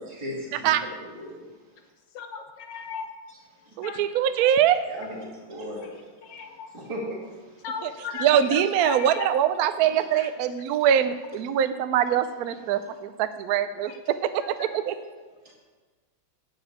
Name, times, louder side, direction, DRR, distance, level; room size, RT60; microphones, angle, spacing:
voice 1, 0.0-1.5 2.7-2.8 3.3-3.4 4.9-7.7 9.9-10.0 12.8-13.0 15.4-15.5, equal, 15° right, -5 dB, 2.1 m, -38 dB
voice 2, 2.1-3.1 3.8-4.0 4.4-4.5 6.2-6.7 7.6-9.3 10.1-10.3 14.4-15.0, left 6 dB, 65° left, 6 dB, 1.5 m, -37 dB
voice 3, 3.8-4.8 7.8-7.9 8.2-14.9, right 10 dB, 80° right, 11 dB, 0.8 m, -23 dB
10.0 x 5.1 x 8.2 m, 1.3 s
omnidirectional pair, 2.2 m